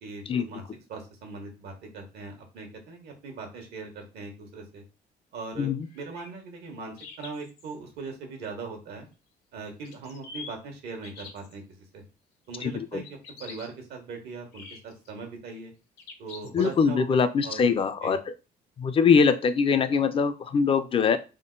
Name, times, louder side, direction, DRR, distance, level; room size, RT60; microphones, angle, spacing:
voice 1, 0.0-0.6 0.9-4.8 5.3-9.1 9.5-12.0 12.5-15.7 16.2-17.7 18.0-18.1, right 4 dB, 75° right, 3 dB, 1.3 m, -40 dB
sound 1, 5.8-6.3 7.0-7.7 9.8-10.5 11.0-11.5 13.0-13.7 14.5-15.1 16.0-16.9, left 5 dB, 70° left, 0.9 m, -45 dB
voice 2, 12.6-13.0 16.5-18.2 18.8-21.2, left 6 dB, 30° left, 10 dB, 0.4 m, -23 dB
3.6 x 2.1 x 3.8 m, 0.31 s
cardioid pair, 110°, 17 cm